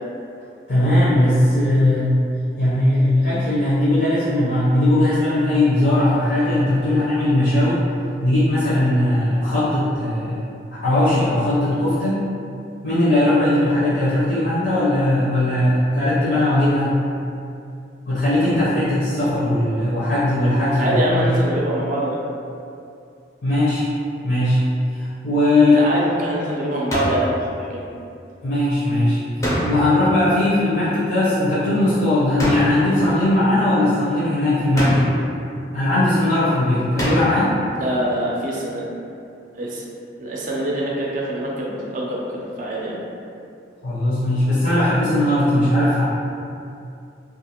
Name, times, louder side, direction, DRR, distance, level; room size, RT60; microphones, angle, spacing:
voice 1, 0.7-2.2 2.6-7.8 8.2-10.4 10.7-12.2 12.8-17.0 18.1-21.3 23.4-23.9 24.2-24.6 24.9-25.9 28.4-29.2 29.6-35.2 35.7-37.6 43.8-46.0, left 1 dB, 70° left, -12 dB, 0.6 m, -19 dB
voice 2, 20.7-22.2 25.7-27.3 27.7-27.8 37.8-38.9 39.6-39.8 40.2-43.0, right 1 dB, 45° right, -4 dB, 0.4 m, -24 dB
sound 1, 26.9-27.3 29.4-30.1 32.4-32.9 34.8-35.3 37.0-37.5, equal, 15° left, 0.4 m, -23 dB
2.4 x 2.4 x 2.8 m, 2.5 s
head